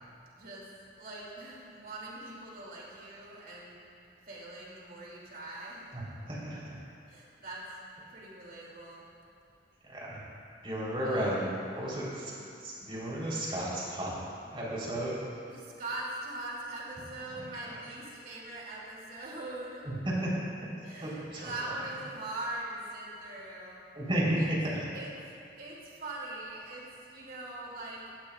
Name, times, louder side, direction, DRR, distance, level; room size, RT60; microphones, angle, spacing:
voice 1, 0.4-0.7 1.0-3.8 4.3-5.9 7.1-7.7 8.1-9.1 11.0-11.4 12.2-12.4 15.5-19.8 20.8-23.8 24.4-24.5 24.9-25.1 25.6-28.0, right 2 dB, 55° right, -4 dB, 2.6 m, -42 dB
voice 2, 5.9-6.8 9.8-10.2 10.6-12.3 12.6-14.1 14.5-15.1 17.3-17.4 19.8-20.3 21.0-21.5 23.9-24.9, right 1 dB, 30° right, -6 dB, 3.6 m, -33 dB
17.0 x 15.5 x 2.4 m, 2.5 s
head